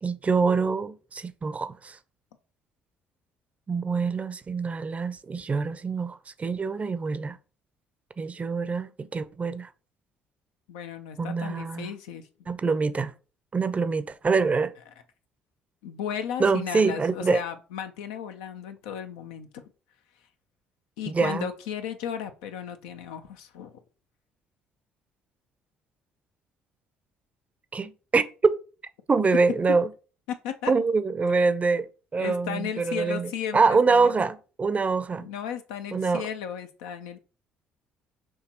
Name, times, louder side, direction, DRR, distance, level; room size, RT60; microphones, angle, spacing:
voice 1, 0.0-2.0 3.7-7.4 8.2-9.7 11.2-11.9 12.5-13.1 13.5-14.7 16.4-17.4 21.1-21.5 27.7-28.6 29.1-29.9 30.7-31.9 32.1-35.3 35.9-36.2, right 4 dB, 30° right, 0.6 m, -25 dB
voice 2, 10.7-12.3 15.8-19.5 21.0-23.7 30.3-30.7 32.2-34.1 35.2-37.2, left 8 dB, 75° left, 0.6 m, -35 dB
6.2 x 2.9 x 2.9 m
hypercardioid pair, 50°, 5 cm